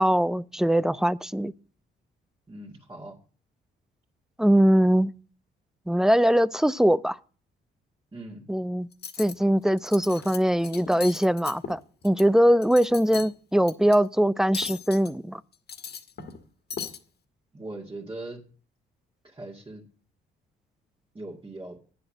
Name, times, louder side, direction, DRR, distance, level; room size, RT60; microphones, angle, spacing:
voice 1, 0.0-1.5 4.4-5.1 5.9-7.2 8.5-8.9 9.2-15.4, equal, 5° right, 0.4 m, -22 dB
voice 2, 2.5-3.2 8.1-8.4 17.5-18.4 19.2-19.8 21.1-21.8, right 2 dB, 25° right, 2.2 m, -40 dB
Cutlery silverware, 8.9-9.3 9.8-10.4 10.6-12.2 12.6-13.3 13.7-14.0 14.5-15.1 15.5-16.4 16.7-17.0, left 6 dB, 55° left, 1.6 m, -37 dB
9.9 x 7.7 x 7.5 m
cardioid pair, 90°, 20 cm